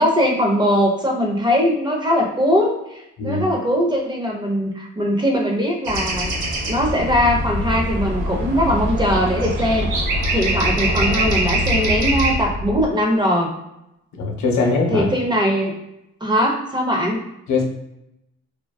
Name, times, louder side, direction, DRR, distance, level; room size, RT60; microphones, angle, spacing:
voice 1, 0.0-6.3 6.7-9.9 10.3-13.5 14.9-15.7 16.2-17.2, equal, 15° right, 0 dB, 0.5 m, -20 dB
sound 1, 5.9-12.4, right 1 dB, 75° right, 0.7 m, -24 dB
sound 2, 7.0-12.9, left 1 dB, 15° left, 1.1 m, -28 dB
voice 2, 14.1-15.1 17.5-17.6, left 3 dB, 70° left, 1 dB, 0.6 m, -21 dB
2.5 x 2.2 x 2.2 m, 0.85 s
cardioid pair, 90°, 30 cm